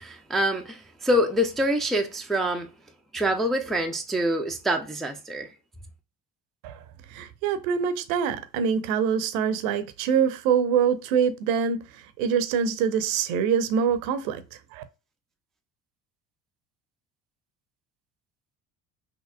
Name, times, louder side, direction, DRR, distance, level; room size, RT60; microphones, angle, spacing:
voice 1, 0.0-2.7 3.1-5.5, equal, ahead, 0.5 m, -26 dB
voice 2, 7.1-14.8, right 7 dB, 55° right, 0.7 m, -25 dB
5.7 x 2.9 x 2.2 m
figure-of-eight pair, 55°, 49 cm